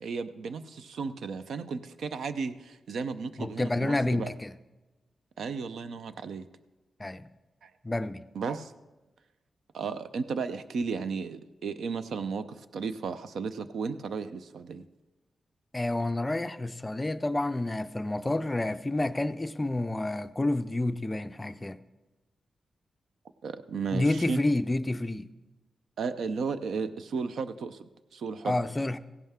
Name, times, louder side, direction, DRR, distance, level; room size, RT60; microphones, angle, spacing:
voice 1, 0.0-4.3 5.4-6.5 7.6-7.7 8.3-8.7 9.7-14.9 23.4-24.4 26.0-28.6, right 5 dB, 80° right, 11 dB, 0.6 m, -34 dB
voice 2, 3.4-4.5 7.0-7.3 7.8-8.2 15.7-21.8 23.9-25.3 28.4-29.0, left 2 dB, 15° left, 11 dB, 0.4 m, -29 dB
16.0 x 11.0 x 3.6 m, 1.1 s
wide cardioid pair, 165°, 0 cm